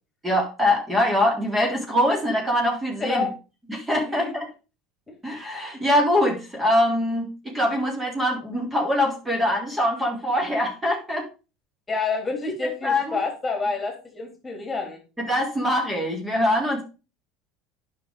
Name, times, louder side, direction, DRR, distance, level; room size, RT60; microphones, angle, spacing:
voice 1, 0.2-3.3 3.7-4.5 5.2-11.2 12.6-13.2 15.2-16.8, left 1 dB, 10° right, 0 dB, 3.4 m, -23 dB
voice 2, 3.0-3.3 4.1-4.4 5.1-5.2 11.9-15.0, left 4 dB, 20° left, 2 dB, 3.8 m, -28 dB
9.4 x 5.9 x 5.2 m, 0.32 s
hypercardioid pair, 80°, 0 cm